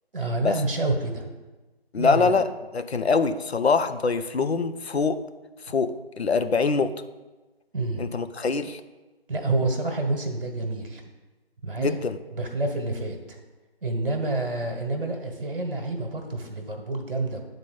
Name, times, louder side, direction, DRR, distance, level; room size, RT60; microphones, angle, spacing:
voice 1, 0.1-1.3 2.0-2.3 7.7-8.1 9.3-11.0 11.6-12.0 12.3-13.4 13.8-17.4, right 2 dB, 60° right, 3 dB, 1.3 m, -28 dB
voice 2, 1.9-2.5 2.7-5.2 5.7-7.0 8.0-8.8 11.8-12.2, left 4 dB, 80° left, 10 dB, 0.6 m, -24 dB
10.5 x 4.1 x 5.2 m, 1.2 s
figure-of-eight pair, 155°, 32 cm